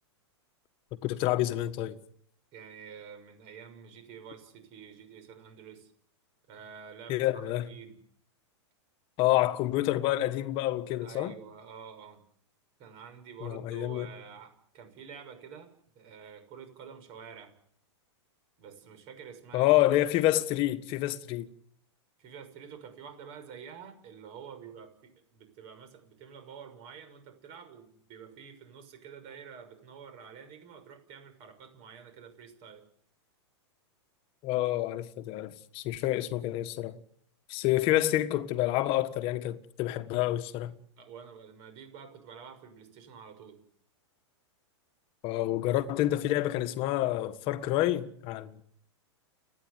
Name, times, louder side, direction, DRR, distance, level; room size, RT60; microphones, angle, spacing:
voice 1, 1.0-2.0 7.1-7.7 9.2-11.4 13.4-14.1 19.5-21.5 34.4-37.0 37.5-40.8 45.2-48.6, left 15 dB, 35° left, 1.6 m, -28 dB
voice 2, 2.5-5.9 6.5-8.0 11.0-12.2 12.8-17.5 18.6-19.8 22.2-32.8 37.7-37.9 41.0-43.6, right 7 dB, 40° right, 6.4 m, -48 dB
29.5 x 10.5 x 9.6 m
hypercardioid pair, 140°, 15 cm